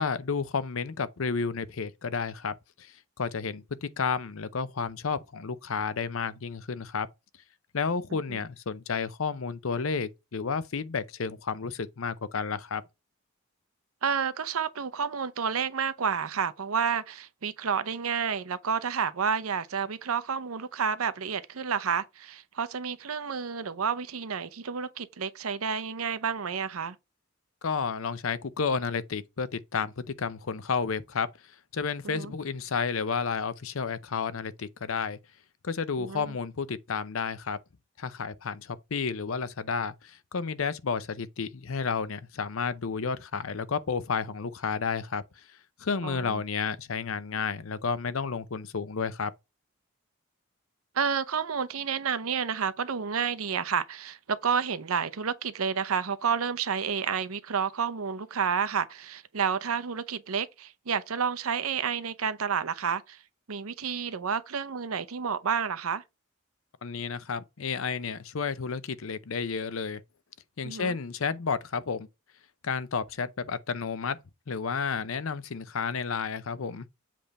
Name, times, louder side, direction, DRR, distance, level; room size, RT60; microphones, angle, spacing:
voice 1, 0.0-2.9 3.2-7.1 7.7-12.8 27.6-31.3 31.7-35.2 35.6-37.6 38.0-45.2 45.8-49.3 66.8-70.0 70.6-72.1 72.6-74.2 74.5-76.9, left 5 dB, 70° left, 0.6 m, -31 dB
voice 2, 14.0-27.0 32.0-32.3 36.0-36.4 46.0-46.4 50.9-63.2 63.5-66.0 70.6-71.0, right 6 dB, 90° right, 0.7 m, -30 dB
7.6 x 3.4 x 5.2 m
head